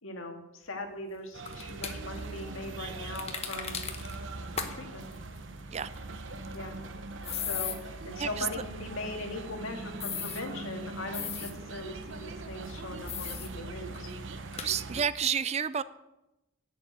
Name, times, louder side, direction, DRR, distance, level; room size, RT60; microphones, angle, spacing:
voice 1, 0.0-3.8 4.7-5.0 6.5-6.8 7.3-14.1, left 2 dB, 80° left, 4 dB, 1.9 m, -40 dB
sound 1, 1.3-15.0, right 3 dB, 60° right, 0.9 m, -41 dB
sound 2, 1.5-2.0 3.2-4.2 4.6-4.7 5.0-5.1 7.2-7.8 10.0-10.4 11.1-11.5 13.1-13.5 13.9-14.0 14.5-14.7, left 8 dB, 30° left, 1.0 m, -36 dB
voice 2, 14.6-15.8, right 7 dB, 30° right, 16 dB, 0.4 m, -30 dB
11.0 x 7.0 x 8.1 m, 0.95 s
head